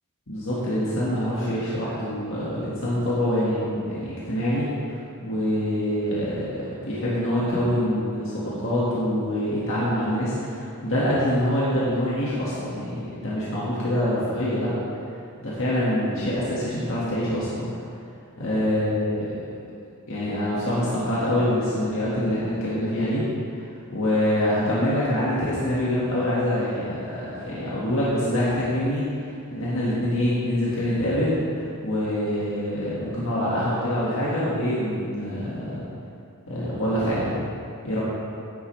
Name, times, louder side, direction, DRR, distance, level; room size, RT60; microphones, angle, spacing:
voice 1, 0.3-14.7 15.4-17.7 18.4-19.3 20.1-23.2 23.9-35.8 36.5-37.3 37.8-38.0, left 1 dB, 65° left, -8 dB, 1.9 m, -25 dB
11.0 x 9.6 x 3.4 m, 2.5 s
head